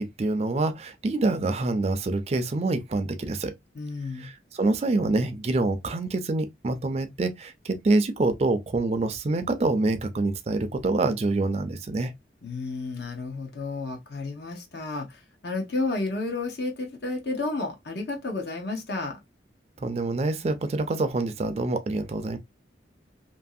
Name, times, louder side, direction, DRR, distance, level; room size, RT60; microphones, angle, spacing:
voice 1, 0.0-3.5 4.2-12.1 19.8-22.4, right 2 dB, 35° right, 0.4 m, -26 dB
voice 2, 3.7-4.3 12.4-19.2, left 3 dB, 65° left, 0.7 m, -31 dB
2.8 x 2.6 x 2.3 m
head